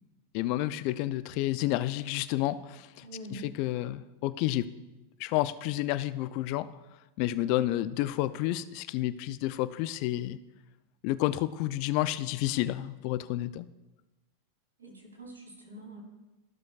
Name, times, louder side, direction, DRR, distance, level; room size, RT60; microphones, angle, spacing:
voice 1, 0.3-4.7 5.2-6.7 7.2-10.4 11.0-13.7, left 15 dB, 55° left, 15 dB, 0.4 m, -30 dB
voice 2, 3.0-3.4 14.8-16.0, right 2 dB, 90° right, -2 dB, 3.1 m, -45 dB
14.5 x 6.2 x 2.4 m, 1.0 s
hypercardioid pair, 100°, 0 cm